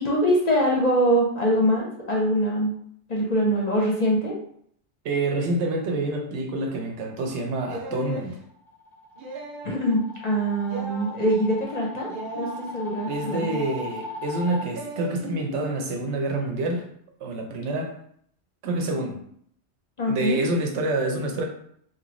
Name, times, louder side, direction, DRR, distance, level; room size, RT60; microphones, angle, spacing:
voice 1, 0.0-2.7 3.1-4.4 9.6-13.6 20.0-20.4, equal, 45° left, -2 dB, 0.6 m, -23 dB
voice 2, 5.0-8.4 13.1-16.8 17.2-17.9 18.6-19.2 20.1-21.4, right 2 dB, 80° right, 2 dB, 0.9 m, -27 dB
sound 1, 7.7-8.3 9.2-9.8 10.7-11.1 12.1-12.6 13.5-14.0 14.8-15.1, right 1 dB, 60° right, 0.6 m, -36 dB
sound 2, 8.5-14.6, left 2 dB, 5° left, 0.3 m, -38 dB
2.9 x 2.5 x 3.0 m, 0.66 s
omnidirectional pair, 1.2 m